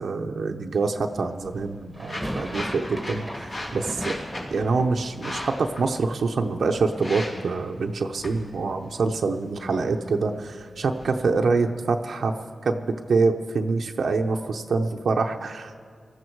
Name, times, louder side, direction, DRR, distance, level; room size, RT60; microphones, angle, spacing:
voice 1, 0.0-4.1 4.5-12.3 12.6-15.7, right 4 dB, 80° right, 3 dB, 0.7 m, -25 dB
sound 1, 1.1-11.1, left 1 dB, 55° left, 3.3 m, -39 dB
sound 2, 1.9-7.9 8.1-9.0 9.3-9.4 9.6-11.8, equal, ahead, 1.5 m, -39 dB
19.0 x 13.5 x 4.6 m, 2.1 s
cardioid pair, 70°, 0 cm